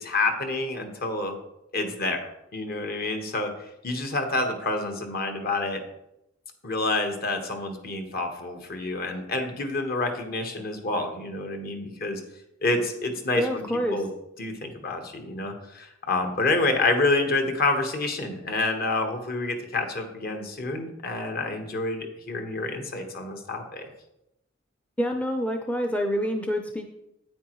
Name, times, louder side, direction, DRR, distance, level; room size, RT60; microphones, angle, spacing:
voice 1, 0.0-1.4 1.7-3.5 3.8-5.8 6.6-12.2 12.6-13.6 13.9-14.1 14.4-23.9, left 2 dB, 50° left, 5 dB, 1.2 m, -28 dB
voice 2, 13.4-14.0 25.0-26.9, equal, 5° left, 4 dB, 0.5 m, -27 dB
9.3 x 8.6 x 3.1 m, 0.86 s
head